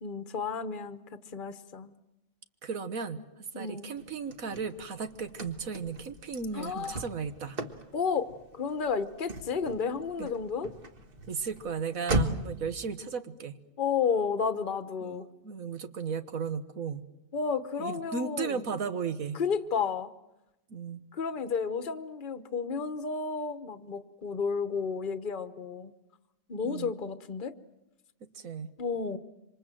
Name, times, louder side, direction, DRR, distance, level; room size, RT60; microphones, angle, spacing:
voice 1, 0.0-1.9 3.5-3.9 6.5-7.0 7.9-10.7 13.8-15.3 17.3-18.7 19.3-20.1 21.1-25.9 26.5-27.5 28.8-29.2, left 5 dB, 40° left, 11 dB, 1.2 m, -32 dB
voice 2, 2.6-3.3 3.6-7.6 10.2-10.3 11.3-13.6 15.0-17.1 17.8-19.4 20.7-21.0 26.6-27.0 28.3-28.7, right 5 dB, 80° right, 9 dB, 1.8 m, -35 dB
Car / Slam, 4.0-12.6, right 1 dB, 45° right, 1.6 m, -37 dB
27.0 x 25.5 x 7.7 m, 0.94 s
omnidirectional pair, 1.4 m